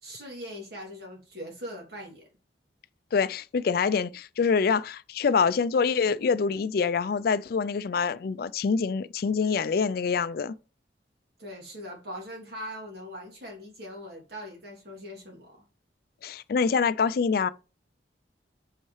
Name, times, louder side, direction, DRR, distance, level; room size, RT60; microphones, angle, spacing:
voice 1, 0.0-2.3 11.4-15.6, equal, 60° right, 2.7 m, -41 dB
voice 2, 3.1-10.5 16.2-17.5, left 5 dB, 60° left, 0.4 m, -25 dB
5.7 x 5.4 x 3.2 m
head